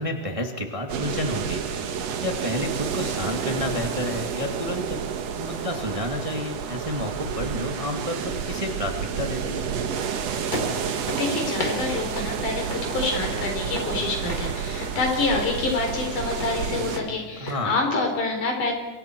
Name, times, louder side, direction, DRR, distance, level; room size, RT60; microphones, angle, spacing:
voice 1, 0.0-1.8 2.2-9.6 17.4-17.7, left 1 dB, 15° right, 3 dB, 1.5 m, -30 dB
sound 1, 0.9-17.0, right 7 dB, 60° right, 2.3 m, -30 dB
sound 2, 10.0-17.6, left 2 dB, 25° left, 4.7 m, -37 dB
voice 2, 10.9-18.7, left 3 dB, 85° left, 2 dB, 5.6 m, -27 dB
27.5 x 23.5 x 4.6 m, 1.3 s
omnidirectional pair, 3.6 m